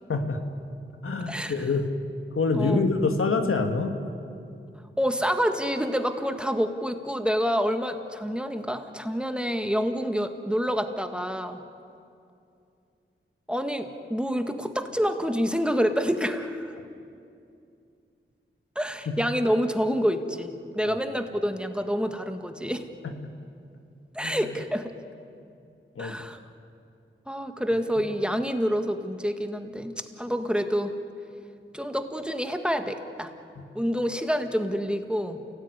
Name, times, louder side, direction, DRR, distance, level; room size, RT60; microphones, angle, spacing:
voice 1, 0.1-0.4 1.0-1.9 2.3-3.9 20.8-20.9 23.0-23.1 24.2-24.5 26.0-26.2 33.6-33.7, left 3 dB, 85° left, 5 dB, 2.0 m, -26 dB
voice 2, 1.3-1.6 2.5-2.8 5.0-11.6 13.5-16.8 18.7-22.9 24.1-24.9 26.0-26.4 27.3-30.9 31.7-33.3 33.7-35.4, equal, 5° right, 6 dB, 1.7 m, -27 dB
29.0 x 17.5 x 9.7 m, 2.5 s
wide cardioid pair, 80°, 21 cm